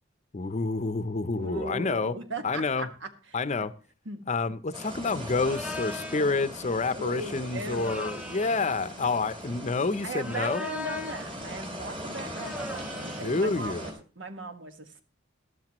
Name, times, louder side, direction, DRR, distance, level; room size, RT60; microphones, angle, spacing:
voice 1, 0.3-2.1 2.4-2.9 3.3-3.7 4.3-10.6 13.2-13.8, left 3 dB, 40° left, 0.6 m, -28 dB
voice 2, 1.3-3.7 4.0-4.2 6.9-7.9 10.0-15.0, right 2 dB, 85° right, 1.7 m, -38 dB
sound 1, 4.7-13.9, equal, 30° right, 3.8 m, -40 dB
sound 2, 5.4-6.3 7.7-8.7 10.1-11.3 12.3-13.4, left 2 dB, 5° right, 0.7 m, -39 dB
13.5 x 12.5 x 3.0 m
head